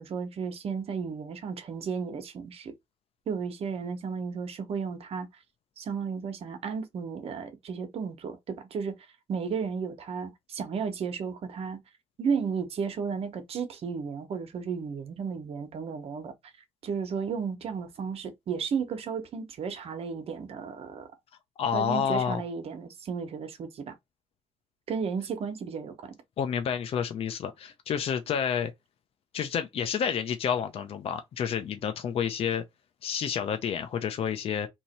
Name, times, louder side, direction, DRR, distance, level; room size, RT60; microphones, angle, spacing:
voice 1, 0.0-2.7 3.3-5.3 5.8-8.9 9.3-11.8 12.2-16.3 16.8-21.1 21.7-23.9 24.9-26.1, right 6 dB, 65° right, 1.0 m, -33 dB
voice 2, 21.6-22.4 26.4-28.7 29.3-32.6 33.0-34.7, left 7 dB, 60° left, 0.6 m, -29 dB
2.9 x 2.8 x 4.2 m
cardioid pair, 100°, 11 cm